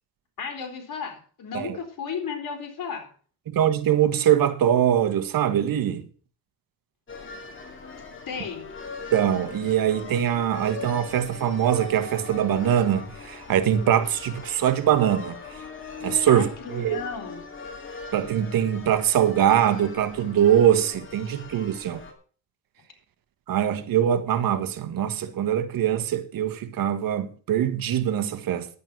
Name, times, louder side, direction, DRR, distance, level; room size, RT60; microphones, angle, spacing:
voice 1, 0.4-3.1 8.3-8.7 16.3-17.4, left 6 dB, 60° left, 3.8 m, -34 dB
voice 2, 3.5-6.0 9.1-15.4 16.0-17.0 18.1-22.0 23.5-28.7, right 10 dB, 70° right, 1.4 m, -23 dB
sound 1, 7.1-22.1, left 4 dB, 35° left, 2.7 m, -40 dB
11.0 x 8.8 x 6.1 m
cardioid pair, 95°, 36 cm